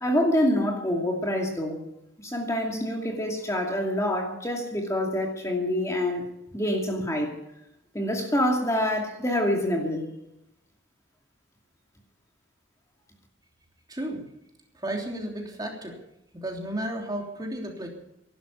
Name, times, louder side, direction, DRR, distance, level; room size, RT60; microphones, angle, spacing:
voice 1, 0.0-1.8 2.2-6.2 6.5-7.4 7.9-10.0, left 1 dB, 15° left, 0 dB, 2.5 m, -26 dB
voice 2, 13.9-14.2 14.7-16.0 16.3-17.9, right 1 dB, 20° right, 0 dB, 3.3 m, -33 dB
16.5 x 12.0 x 7.1 m, 0.84 s
head